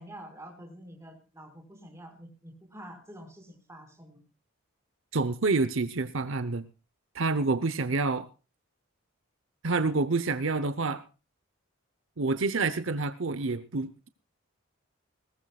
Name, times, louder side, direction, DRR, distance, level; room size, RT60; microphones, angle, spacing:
voice 1, 0.0-4.2, right 1 dB, 15° right, 4 dB, 5.0 m, -47 dB
voice 2, 5.1-6.7 7.1-8.3 9.6-11.0 12.2-14.1, right 3 dB, 65° right, 13 dB, 0.9 m, -28 dB
21.0 x 19.0 x 2.4 m, 0.33 s
head